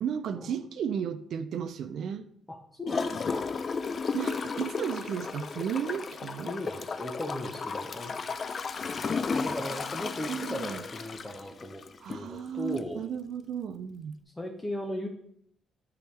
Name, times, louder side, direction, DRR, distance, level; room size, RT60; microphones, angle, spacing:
voice 1, 0.0-2.3 4.1-6.5 10.3-10.8 12.0-14.2, right 8 dB, 70° right, 10 dB, 0.4 m, -34 dB
voice 2, 2.5-3.5 6.5-8.2 9.2-11.8 12.1-13.0 14.4-15.1, left 1 dB, 15° left, 1 dB, 0.8 m, -37 dB
Gurgling / Toilet flush, 2.9-12.3 12.8-12.9, left 5 dB, 45° left, 0.4 m, -34 dB
9.0 x 3.5 x 3.3 m, 0.67 s
cardioid pair, 90°, 0 cm